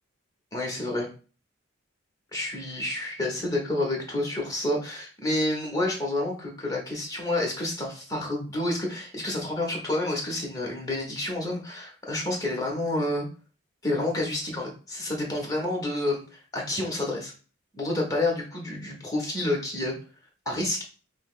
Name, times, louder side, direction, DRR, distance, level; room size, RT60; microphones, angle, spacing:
voice 1, 0.5-1.1 2.3-13.3 13.8-16.2 16.5-17.3 17.7-19.9 20.5-20.8, left 1 dB, 15° left, -1 dB, 0.9 m, -29 dB
5.6 x 2.0 x 2.4 m, 0.36 s
head